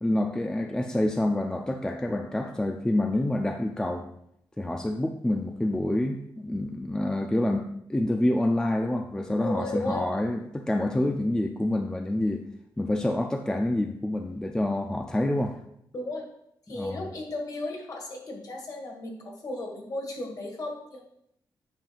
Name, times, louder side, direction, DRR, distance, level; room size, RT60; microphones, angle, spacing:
voice 1, 0.0-4.0 4.6-12.4 12.8-15.6 16.7-17.0, left 1 dB, 10° left, 5 dB, 0.4 m, -27 dB
voice 2, 9.4-10.0 15.9-16.2 16.7-21.0, left 2 dB, 50° left, 1 dB, 1.7 m, -35 dB
8.8 x 5.4 x 2.5 m, 0.75 s
wide cardioid pair, 125°, 8 cm